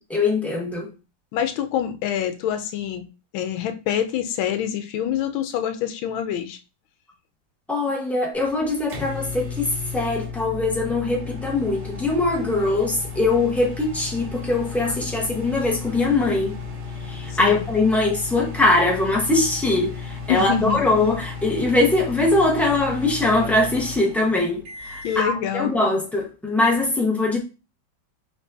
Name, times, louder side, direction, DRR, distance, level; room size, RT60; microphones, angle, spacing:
voice 1, 0.1-0.9 7.7-16.5 17.1-20.0 20.3-27.4, left 2 dB, ahead, 0.7 m, -22 dB
voice 2, 1.3-3.0 3.3-6.6 17.3-17.6 20.3-20.8 25.0-25.7, left 10 dB, 85° left, 1.4 m, -26 dB
sound 1, 8.3-25.3, left 5 dB, 60° right, 1.8 m, -34 dB
4.5 x 4.0 x 2.7 m
omnidirectional pair, 2.2 m